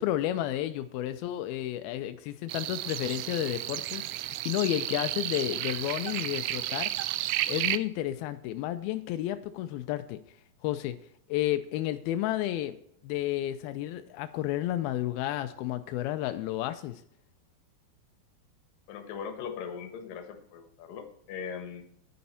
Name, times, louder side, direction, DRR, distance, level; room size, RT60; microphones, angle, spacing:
voice 1, 0.0-6.9 7.5-10.2 10.6-11.0 11.3-12.8 13.0-17.0, left 13 dB, 85° left, 9 dB, 2.2 m, -31 dB
sound 1, 2.5-7.8, right 16 dB, 80° right, 2.5 m, -32 dB
voice 2, 18.9-21.8, left 6 dB, 65° left, 6 dB, 2.6 m, -40 dB
10.5 x 9.7 x 4.2 m, 0.69 s
omnidirectional pair, 4.9 m